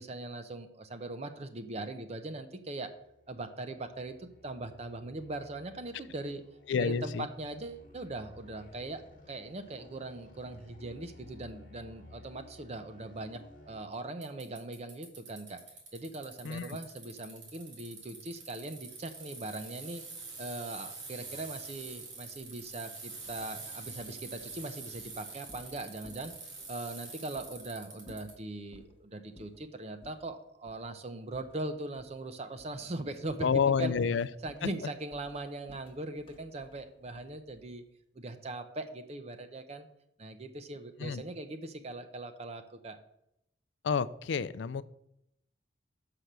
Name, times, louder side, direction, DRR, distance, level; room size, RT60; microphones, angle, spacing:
voice 1, 0.0-2.9 3.3-6.4 6.8-9.0 9.3-13.4 13.7-15.6 15.9-20.0 20.4-26.4 26.7-34.0 34.4-37.8 38.1-39.9 40.2-43.0, right 2 dB, 35° right, 8 dB, 0.6 m, -40 dB
sound 1, 2.4-13.9, left 2 dB, 45° left, 1.3 m, -56 dB
voice 2, 6.7-7.3 16.4-16.6 33.4-34.3 41.0-41.2 43.8-44.8, left 6 dB, 75° left, 16 dB, 0.4 m, -29 dB
Bicycle, 14.2-28.3, right 4 dB, 80° right, 2.8 m, -46 dB
sound 2, 23.2-26.9 27.3-27.5 28.0-29.0 29.3-29.7 30.0-30.2 30.6-30.9 31.3-32.3 32.6-32.9 33.3-33.6 33.9-37.8, left 1 dB, 30° left, 0.9 m, -58 dB
6.2 x 5.8 x 6.6 m, 0.79 s
head